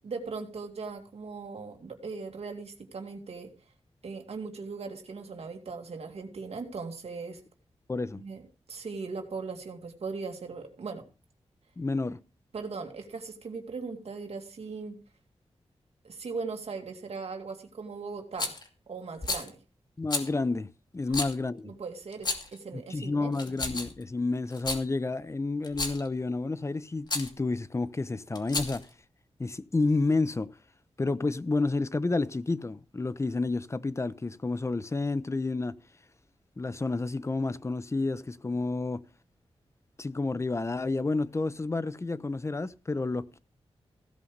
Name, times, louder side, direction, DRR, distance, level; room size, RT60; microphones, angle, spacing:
voice 1, 0.0-3.5 4.0-7.4 8.2-8.4 8.7-11.0 12.5-15.0 16.0-18.6 18.9-19.6 21.1-21.2 21.6-23.4, right 4 dB, 75° right, 2.3 m, -39 dB
voice 2, 7.9-8.2 11.8-12.2 20.0-20.7 20.9-21.7 22.7-28.9 29.4-30.5 31.0-35.8 36.6-39.0 40.0-43.4, left 3 dB, 25° left, 0.7 m, -30 dB
Rattle, 18.4-18.7 19.2-19.5 20.1-20.3 21.1-21.3 22.1-22.6 23.3-24.0 24.5-24.8 25.6-26.1 27.1-27.3 28.3-28.9, left 3 dB, 40° left, 2.6 m, -32 dB
16.0 x 5.6 x 6.6 m
wide cardioid pair, 85°, 11 cm